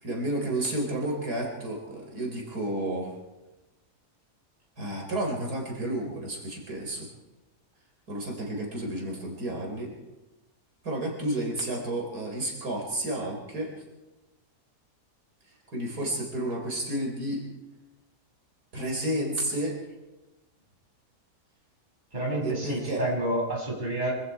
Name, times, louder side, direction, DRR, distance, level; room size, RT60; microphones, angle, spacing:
voice 1, 0.0-3.1 4.8-7.1 8.1-9.9 10.8-13.7 15.7-17.4 18.7-19.8 22.4-23.0, right 1 dB, 85° right, 0 dB, 4.9 m, -31 dB
voice 2, 22.1-24.1, right 1 dB, 30° right, -2 dB, 6.8 m, -29 dB
25.5 x 25.5 x 4.8 m, 1.1 s
omnidirectional pair, 1.6 m